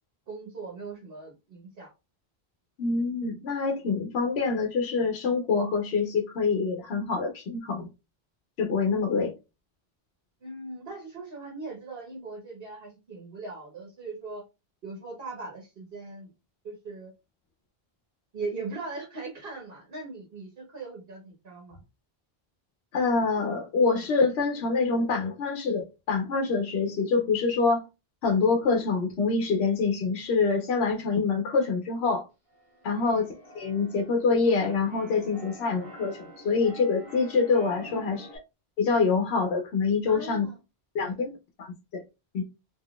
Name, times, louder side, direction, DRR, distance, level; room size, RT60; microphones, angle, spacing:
voice 1, 0.3-1.9 10.4-14.4 14.8-16.3 16.6-17.1 18.3-21.8 32.9-33.2 37.9-38.2 40.1-40.6 41.0-41.3, right 3 dB, 65° right, 1.2 m, -39 dB
voice 2, 2.8-7.9 8.6-9.3 22.9-27.8 28.2-32.3 32.8-33.3 33.6-38.3 38.8-40.4 40.9-41.3 41.6-41.7 41.9-42.0 42.3-42.4, left 4 dB, 85° left, 0.9 m, -25 dB
Keyboard (musical), 32.5-38.4, right 1 dB, 35° right, 1.3 m, -47 dB
3.6 x 2.8 x 2.3 m
omnidirectional pair, 1.0 m